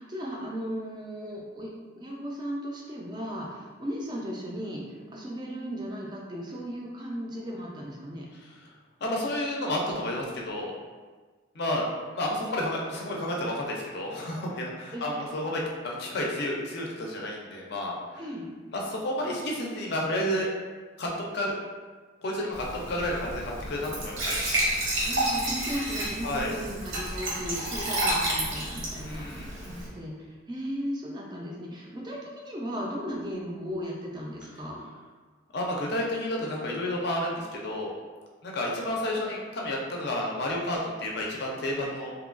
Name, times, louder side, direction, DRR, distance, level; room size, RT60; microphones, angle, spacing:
voice 1, 0.0-8.3 14.9-15.2 18.2-18.5 25.0-34.8, equal, 20° right, -3 dB, 0.4 m, -36 dB
voice 2, 9.0-10.7 11.5-11.9 12.1-18.2 18.7-20.5 21.0-21.5 22.2-24.4 26.2-26.5 29.0-29.5 35.5-37.9 38.4-42.1, left 1 dB, 50° left, -2 dB, 0.4 m, -31 dB
Glass / Trickle dribble / Fill (with liquid), 22.5-29.9, right 1 dB, 75° right, 0.8 m, -30 dB
2.8 x 2.2 x 2.4 m, 1.4 s
head